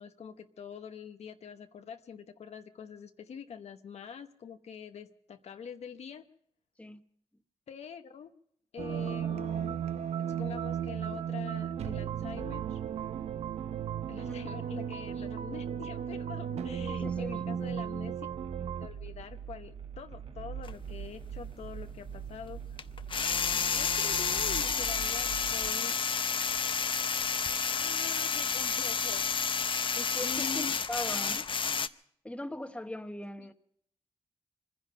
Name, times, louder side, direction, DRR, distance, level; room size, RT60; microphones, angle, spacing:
voice 1, 0.0-6.3 7.7-8.3 8.7-9.8 10.3-12.8 14.1-18.3 18.8-22.6 23.5-26.0 27.7-29.5 30.2-30.8 33.4-33.5, left 7 dB, 75° left, 0.9 m, -45 dB
sound 1, 8.8-18.9, right 9 dB, 75° right, 0.6 m, -35 dB
voice 2, 16.9-17.7 29.9-31.5 32.2-33.5, left 1 dB, 10° left, 1.0 m, -40 dB
sound 2, 18.3-25.7, right 8 dB, 60° right, 1.5 m, -43 dB
sound 3, 20.6-20.7 22.8-31.9, left 6 dB, 50° left, 0.6 m, -30 dB
25.0 x 10.5 x 5.4 m
cardioid pair, 70°, 11 cm